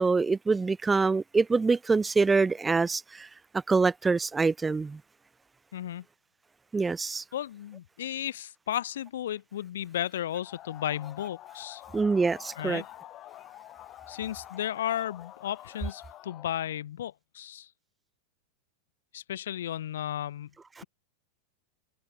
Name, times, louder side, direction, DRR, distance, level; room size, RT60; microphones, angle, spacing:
voice 1, 0.0-3.3 3.7-5.0 6.7-7.2 11.9-12.8 20.8-20.9, right 4 dB, 10° right, 1.0 m, -25 dB
voice 2, 5.7-6.0 7.3-11.8 12.5-12.9 14.1-17.7 19.1-20.5, left 11 dB, 60° left, 4.3 m, -34 dB
sound 1, 10.4-16.6, left 14 dB, 35° left, 6.8 m, -48 dB
figure-of-eight pair, 90°, 0 cm